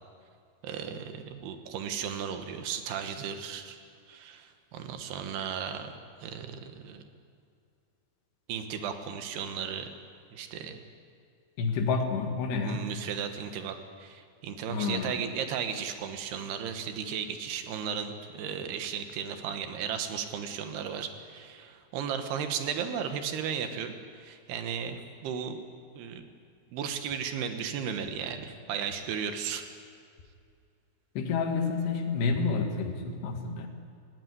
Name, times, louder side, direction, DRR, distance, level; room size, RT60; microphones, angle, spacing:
voice 1, 0.6-3.8 4.1-7.0 8.5-9.9 10.3-10.8 12.6-25.6 25.9-26.3 26.7-29.7, right 7 dB, 80° right, 7 dB, 3.3 m, -35 dB
voice 2, 11.6-12.9 14.7-15.1 31.2-33.7, left 4 dB, 85° left, 4 dB, 3.9 m, -29 dB
18.5 x 16.5 x 9.7 m, 2.3 s
omnidirectional pair, 4.7 m